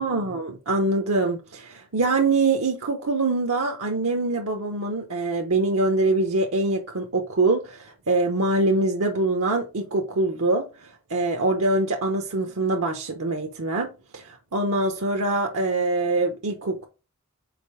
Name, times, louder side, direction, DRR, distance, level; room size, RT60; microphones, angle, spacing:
voice 1, 0.0-16.9, right 2 dB, 80° right, 0.9 m, -24 dB
5.1 x 4.3 x 4.9 m
head